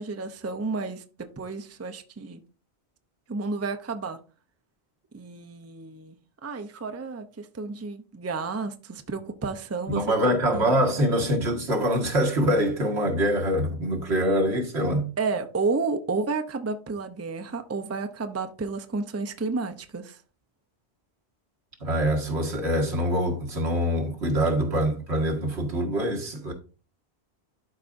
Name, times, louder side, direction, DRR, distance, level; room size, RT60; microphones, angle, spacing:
voice 1, 0.0-2.4 3.3-4.2 5.1-6.2 6.4-10.1 10.5-10.8 15.2-20.2, right 4 dB, 20° right, 0.5 m, -31 dB
voice 2, 9.9-15.1 21.8-26.5, equal, 85° right, 1.9 m, -24 dB
11.5 x 4.8 x 2.6 m
omnidirectional pair, 1.1 m